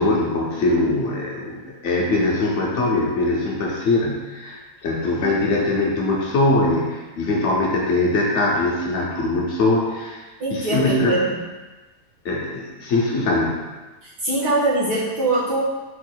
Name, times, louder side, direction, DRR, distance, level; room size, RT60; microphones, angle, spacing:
voice 1, 0.0-10.2 10.5-11.2 12.2-13.6, left 2 dB, 55° left, -2 dB, 0.9 m, -22 dB
voice 2, 10.4-11.4 14.0-15.6, right 2 dB, 75° right, -9 dB, 2.0 m, -22 dB
4.6 x 2.4 x 4.5 m, 1.2 s
omnidirectional pair, 1.8 m